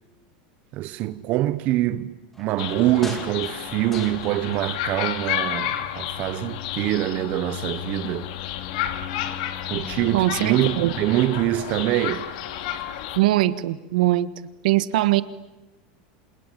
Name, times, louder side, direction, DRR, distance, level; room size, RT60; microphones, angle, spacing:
voice 1, 0.7-8.3 9.7-12.3, right 15 dB, 35° right, 0.9 m, -24 dB
sound 1, 2.3-4.8 5.0-6.1 6.5-6.6, left 1 dB, 5° left, 2.7 m, -42 dB
sound 2, 2.6-13.2, left 11 dB, 60° left, 2.6 m, -31 dB
voice 2, 10.1-10.9 13.1-14.3 14.6-15.2, right 16 dB, 75° right, 1.5 m, -21 dB
28.0 x 27.5 x 7.6 m
supercardioid pair, 170°, 5 cm